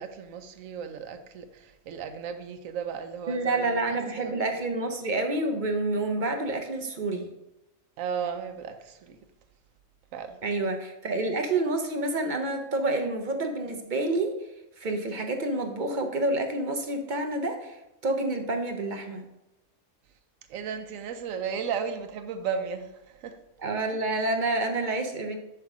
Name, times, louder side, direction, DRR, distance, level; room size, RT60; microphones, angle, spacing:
voice 1, 0.0-4.3 8.0-9.2 10.1-10.4 20.5-23.4, right 6 dB, 90° right, 1.0 m, -35 dB
voice 2, 3.3-7.3 10.4-14.3 14.8-17.8 18.0-19.2 23.6-25.4, right 2 dB, 50° right, 0.7 m, -28 dB
7.6 x 3.5 x 5.9 m
omnidirectional pair, 1.3 m